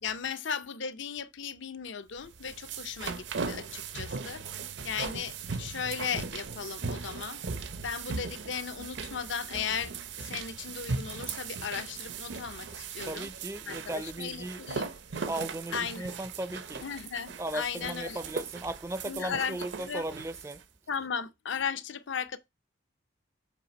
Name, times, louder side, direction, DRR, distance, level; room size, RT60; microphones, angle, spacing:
voice 1, 0.0-4.4 4.8-7.4 7.8-13.3 13.7-15.0 15.7-16.1 16.8-18.2 19.0-20.1 20.9-22.4, left 7 dB, 70° left, 0.6 m, -36 dB
sound 1, 2.2-20.6, right 4 dB, 65° right, 0.6 m, -38 dB
voice 2, 13.0-14.6 15.3-16.8 17.4-20.6, right 1 dB, 15° right, 0.4 m, -37 dB
7.4 x 3.3 x 5.2 m
head